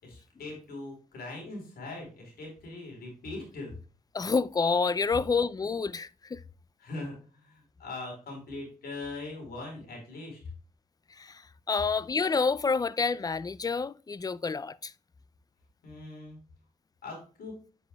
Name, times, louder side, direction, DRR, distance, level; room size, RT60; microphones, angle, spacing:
voice 1, 0.0-3.7 6.8-10.4 15.8-16.4 17.0-17.5, left 2 dB, 90° left, 4.4 m, -41 dB
voice 2, 4.1-6.4 11.1-14.9, left 4 dB, 25° left, 0.4 m, -28 dB
9.6 x 6.3 x 2.3 m
cardioid pair, 80°, 15 cm